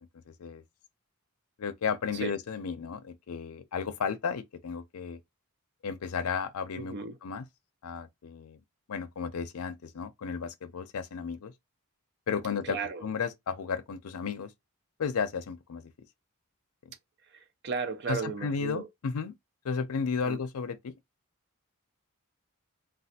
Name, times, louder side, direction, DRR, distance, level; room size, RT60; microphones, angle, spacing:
voice 1, 0.3-0.6 1.6-5.2 5.8-7.0 7.2-7.4 7.8-8.6 8.9-11.5 12.3-14.5 15.0-15.9 18.1-19.3 19.6-20.9, left 6 dB, 80° left, 0.5 m, -33 dB
voice 2, 6.8-7.2 12.6-13.1 17.3-18.9 20.2-20.4, right 5 dB, 50° right, 0.5 m, -35 dB
3.2 x 2.3 x 2.7 m
head